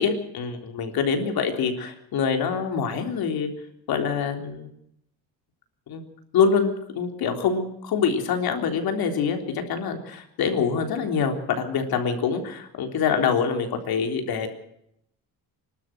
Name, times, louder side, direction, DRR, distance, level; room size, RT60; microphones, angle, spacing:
voice 1, 0.0-3.5 3.9-4.7 5.9-6.1 6.3-14.5, left 6 dB, 75° left, 5 dB, 3.8 m, -25 dB
26.5 x 12.5 x 7.8 m, 0.76 s
cardioid pair, 135°, 37 cm